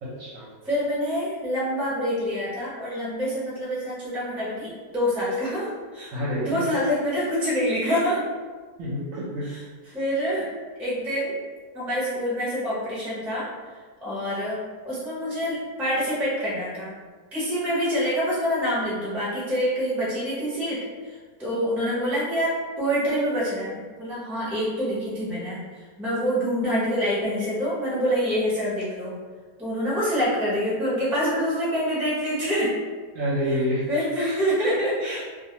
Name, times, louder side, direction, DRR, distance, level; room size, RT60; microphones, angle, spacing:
voice 1, 0.0-0.5 6.1-6.6 8.8-9.5 33.1-33.8, equal, 65° right, -6 dB, 0.9 m, -27 dB
voice 2, 0.6-6.1 6.4-8.2 9.4-9.6 9.9-10.5 10.8-11.3 11.7-13.5 14.0-14.6 14.8-16.9 17.3-20.8 21.0-25.6 26.0-29.1 29.6-32.7 33.9-35.3, equal, ahead, -8 dB, 0.5 m, -26 dB
2.5 x 2.4 x 2.8 m, 1.4 s
omnidirectional pair, 1.7 m